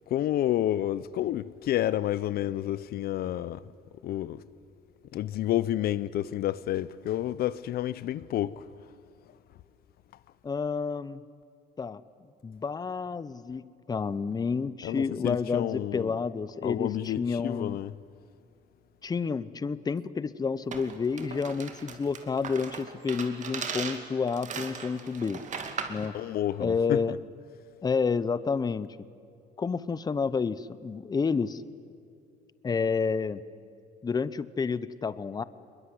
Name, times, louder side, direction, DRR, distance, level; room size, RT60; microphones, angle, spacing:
voice 1, 0.1-3.6 4.0-4.4 5.1-8.7 14.8-16.1 16.6-17.9 26.0-27.2, left 12 dB, 65° left, 0.7 m, -30 dB
voice 2, 10.4-11.2 11.8-12.0 12.4-17.8 19.0-25.4 25.9-26.1 26.6-27.2 27.8-28.9 29.6-31.6 32.6-33.4 34.0-35.4, left 5 dB, 25° left, 0.7 m, -30 dB
sound 1, 20.7-26.1, right 6 dB, 45° right, 2.5 m, -38 dB
22.5 x 22.0 x 9.8 m
cardioid pair, 110°, 17 cm